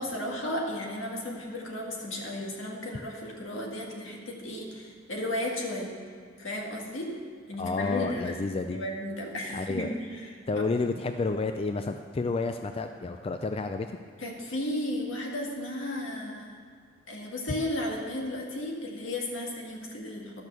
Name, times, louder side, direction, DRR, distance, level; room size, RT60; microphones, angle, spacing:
voice 1, 0.0-6.0 6.4-7.2 7.5-8.4 8.7-10.3 14.2-16.6 17.1-20.4, left 1 dB, 75° left, 0 dB, 1.9 m, -34 dB
voice 2, 7.6-8.8 9.5-9.9 10.5-13.9, left 3 dB, 30° left, 7 dB, 0.3 m, -30 dB
12.5 x 6.2 x 6.8 m, 2.1 s
head